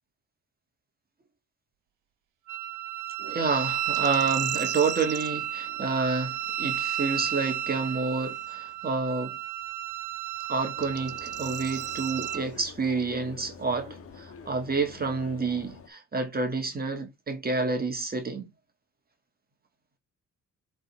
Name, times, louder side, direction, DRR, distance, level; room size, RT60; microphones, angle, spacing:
Wind instrument woodwind instrument, 2.5-12.4, right 12 dB, 75° right, 1.0 m, -32 dB
voice 1, 3.2-9.3 10.5-18.5, right 4 dB, 30° right, 1.7 m, -29 dB
sound 1, 3.9-5.3 8.4-8.5 10.7-12.4, right 11 dB, 55° right, 0.6 m, -39 dB
sound 2, 10.8-15.9, left 5 dB, 45° left, 1.5 m, -47 dB
7.7 x 3.7 x 4.2 m
cardioid pair, 90°, 30 cm